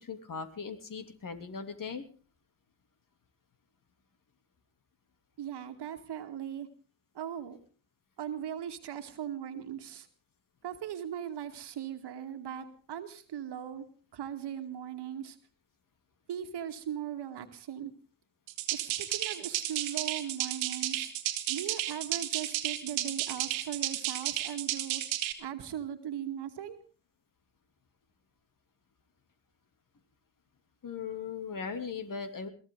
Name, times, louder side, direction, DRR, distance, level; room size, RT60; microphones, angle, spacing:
voice 1, 0.0-2.0 30.8-32.5, left 6 dB, 45° left, 7 dB, 3.1 m, -38 dB
voice 2, 5.4-6.7 7.1-7.6 8.2-10.1 10.6-13.8 14.1-15.4 16.3-17.9 18.7-21.1 21.5-25.0 25.4-26.8, right 10 dB, 55° right, 8 dB, 2.1 m, -39 dB
sound 1, 18.5-25.3, right 14 dB, 75° right, 2.0 m, -33 dB
22.0 x 16.5 x 3.9 m, 0.38 s
hypercardioid pair, 50°, 47 cm